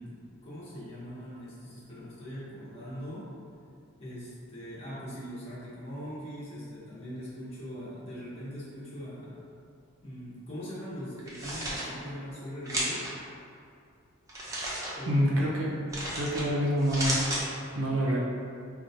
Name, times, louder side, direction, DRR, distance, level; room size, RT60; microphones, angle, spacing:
voice 1, 0.0-3.3 4.0-9.4 10.0-13.1 14.9-15.4, equal, 30° left, -10 dB, 0.7 m, -41 dB
sound 1, 11.2-11.8 12.7-13.1 14.3-14.9 15.9-16.4 16.8-17.4, right 1 dB, 15° right, 0.5 m, -32 dB
voice 2, 15.1-15.8 16.1-17.2 17.8-18.3, equal, 65° right, -4 dB, 0.5 m, -27 dB
4.2 x 2.2 x 2.6 m, 2.4 s
head